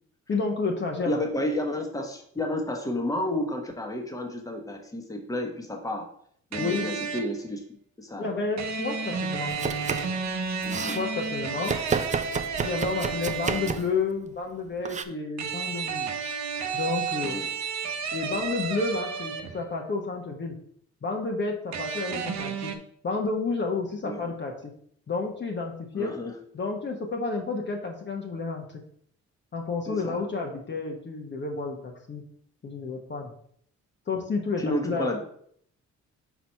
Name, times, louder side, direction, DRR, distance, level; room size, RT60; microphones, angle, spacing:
voice 1, 0.3-1.2 6.6-7.0 8.2-9.5 10.9-11.7 12.6-16.2 16.7-17.4 18.1-20.5 21.0-22.7 23.0-24.7 25.1-26.1 26.5-28.6 29.5-32.2 32.6-33.3 34.1-35.2, left 4 dB, 35° left, 1 dB, 1.1 m, -30 dB
voice 2, 1.0-6.1 6.5-7.6 8.0-8.3 10.6-11.0 17.2-17.5 24.0-24.2 25.9-26.3 29.9-30.2 34.6-35.2, left 1 dB, 10° left, 2 dB, 1.2 m, -31 dB
sound 1, 6.5-7.4 8.6-13.9 15.4-19.7 21.7-22.8, right 5 dB, 65° right, 0.8 m, -32 dB
Domestic sounds home sounds, 9.5-10.2 10.5-11.0 11.6-14.0 14.8-15.0, right 5 dB, 25° right, 0.4 m, -31 dB
4.6 x 4.0 x 5.6 m, 0.65 s
cardioid pair, 90°, 30 cm